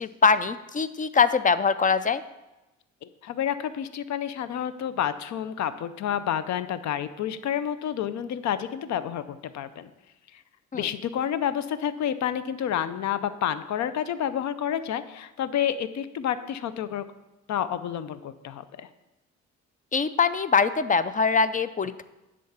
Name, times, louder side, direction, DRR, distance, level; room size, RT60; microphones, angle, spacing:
voice 1, 0.0-2.2 10.7-10.9 19.9-22.0, left 5 dB, 25° left, 13 dB, 0.4 m, -23 dB
voice 2, 3.0-9.9 10.3-10.4 10.7-17.0 17.5-18.9, left 9 dB, 65° left, 13 dB, 0.6 m, -29 dB
10.5 x 3.8 x 7.1 m, 1.0 s
cardioid pair, 90°, 30 cm